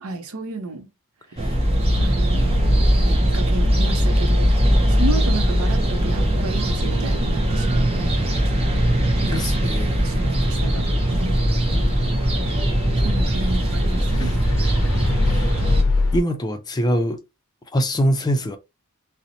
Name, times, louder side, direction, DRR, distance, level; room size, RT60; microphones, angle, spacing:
voice 1, 0.0-0.9 2.0-2.7 3.0-4.6 4.9-8.4 9.2-10.9 11.2-11.5 13.0-14.4, right 3 dB, 80° right, 0.6 m, -32 dB
sound 1, 1.4-15.8, equal, 30° right, 0.6 m, -20 dB
sound 2, 1.9-16.2, left 2 dB, 80° left, 0.5 m, -29 dB
Bowed string instrument, 6.5-10.6, right 2 dB, 50° right, 1.4 m, -41 dB
voice 2, 9.3-10.0 13.4-13.6 14.0-14.3 15.2-15.5 16.0-17.2 17.7-18.6, equal, 20° left, 0.4 m, -24 dB
2.7 x 2.0 x 2.7 m
head